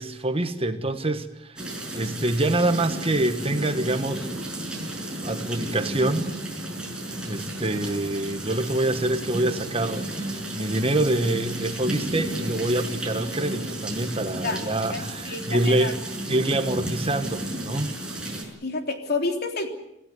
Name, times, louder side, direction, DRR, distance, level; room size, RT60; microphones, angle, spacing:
voice 1, 0.0-1.7 1.9-4.3 5.2-6.3 7.3-16.0 16.2-17.9, right 1 dB, 30° right, 8 dB, 1.4 m, -26 dB
sound 1, 1.6-18.4, right 1 dB, 5° right, 5.8 m, -33 dB
voice 2, 14.9-15.9 18.6-19.7, left 3 dB, 50° left, 4 dB, 3.6 m, -29 dB
27.0 x 16.5 x 9.7 m, 0.84 s
head